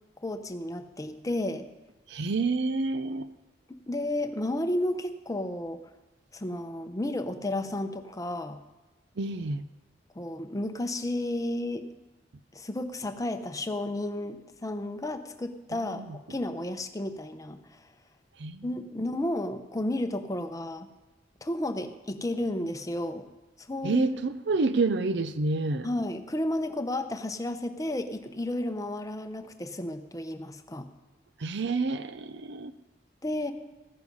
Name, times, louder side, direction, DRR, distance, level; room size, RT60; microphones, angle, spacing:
voice 1, 0.2-1.7 3.7-5.8 6.3-8.6 10.1-12.0 12.5-16.0 16.3-17.8 18.6-20.9 21.4-23.2 23.6-24.1 25.8-30.9 33.2-33.5, left 1 dB, 20° left, 8 dB, 0.8 m, -32 dB
voice 2, 2.1-3.3 9.2-9.6 15.9-16.0 18.4-18.7 23.8-25.9 31.4-32.7, right 3 dB, 65° right, 12 dB, 0.6 m, -28 dB
14.5 x 9.7 x 5.4 m, 1.1 s
head